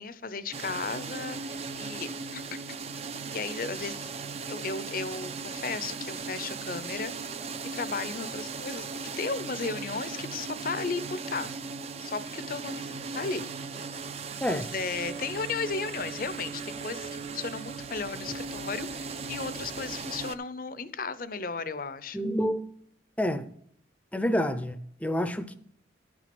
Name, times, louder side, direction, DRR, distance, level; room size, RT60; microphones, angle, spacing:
voice 1, 0.0-2.6 3.3-4.1 4.5-7.1 7.7-8.9 9.2-11.5 12.0-13.5 14.4-22.2, left 4 dB, 50° left, 0.6 m, -35 dB
sound 1, 0.5-20.4, right 4 dB, 35° right, 0.5 m, -37 dB
voice 2, 22.1-22.6 23.2-23.5 24.1-25.6, equal, 5° left, 0.6 m, -28 dB
11.0 x 6.2 x 6.0 m
head